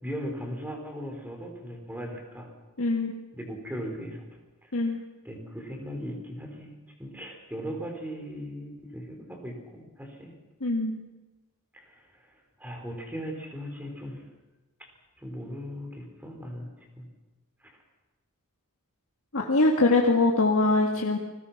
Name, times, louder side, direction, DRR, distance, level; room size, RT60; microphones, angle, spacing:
voice 1, 0.0-2.5 3.3-4.2 4.6-5.0 5.2-10.3 11.7-14.2 14.8-14.9 15.2-16.7 17.0-17.1 17.6-17.7, equal, 10° right, 2 dB, 4.9 m, -38 dB
voice 2, 2.8-3.1 4.7-5.0 10.6-11.0 19.3-21.2, left 2 dB, 65° left, 1 dB, 1.9 m, -23 dB
29.5 x 20.5 x 5.9 m, 1.1 s
head